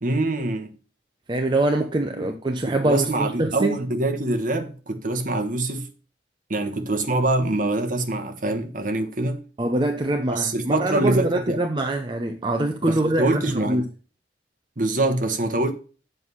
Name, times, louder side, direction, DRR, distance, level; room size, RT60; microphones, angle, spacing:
voice 1, 0.0-0.7 2.1-2.3 2.7-5.9 6.5-9.4 10.3-11.6 12.8-13.9 14.8-15.7, right 2 dB, 45° right, 1.2 m, -24 dB
voice 2, 1.3-3.8 9.6-13.8, right 2 dB, 25° right, 0.6 m, -24 dB
7.6 x 4.7 x 5.6 m
head